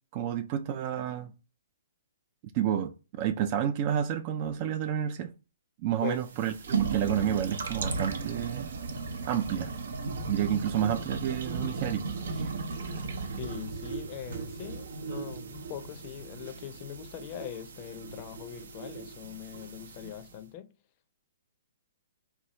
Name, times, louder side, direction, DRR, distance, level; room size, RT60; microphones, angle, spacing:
voice 1, 0.1-1.3 2.5-5.3 5.8-8.7 9.2-9.7 10.3-12.1 12.3-12.5 12.8-13.0, right 10 dB, 40° right, 0.3 m, -30 dB
sound 1, 6.1-20.4, right 4 dB, 75° right, 0.7 m, -36 dB
voice 2, 13.4-20.7, left 11 dB, 40° left, 0.5 m, -41 dB
4.2 x 2.3 x 3.0 m
hypercardioid pair, 135°, 0 cm